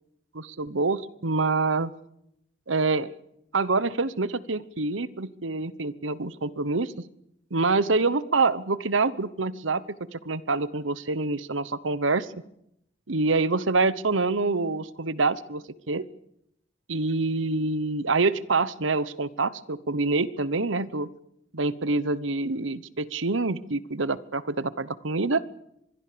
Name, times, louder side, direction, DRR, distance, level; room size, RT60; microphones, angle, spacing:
voice 1, 0.3-1.9 2.7-3.1 3.5-6.9 7.5-9.8 10.1-12.3 13.1-16.1 16.9-21.1 21.5-25.4, right 3 dB, 90° right, 17 dB, 1.1 m, -26 dB
25.0 x 21.5 x 6.9 m, 0.78 s
head